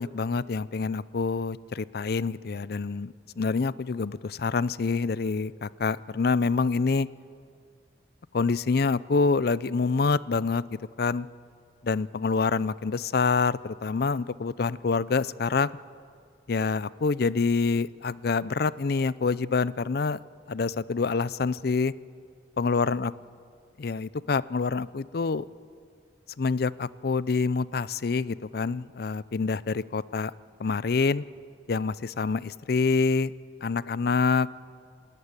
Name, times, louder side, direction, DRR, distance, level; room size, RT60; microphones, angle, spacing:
voice 1, 0.0-7.1 8.3-11.3 11.8-15.7 16.5-20.2 20.5-21.9 22.6-23.1 23.8-25.4 26.4-30.3 30.6-31.2 31.7-33.3 33.6-34.7, left 4 dB, 60° left, 18 dB, 0.5 m, -26 dB
27.0 x 13.5 x 9.7 m, 2.2 s
head